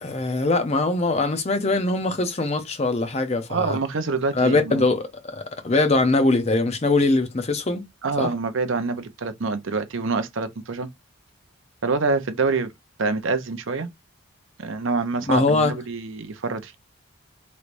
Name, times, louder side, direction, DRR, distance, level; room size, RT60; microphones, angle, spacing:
voice 1, 0.0-3.8 4.3-7.9 8.2-8.3 15.3-15.7, left 2 dB, 30° left, 0.5 m, -22 dB
voice 2, 3.5-4.9 8.0-10.9 11.8-12.7 13.0-13.9 14.6-16.8, right 4 dB, 60° right, 0.6 m, -26 dB
3.1 x 3.1 x 2.5 m
head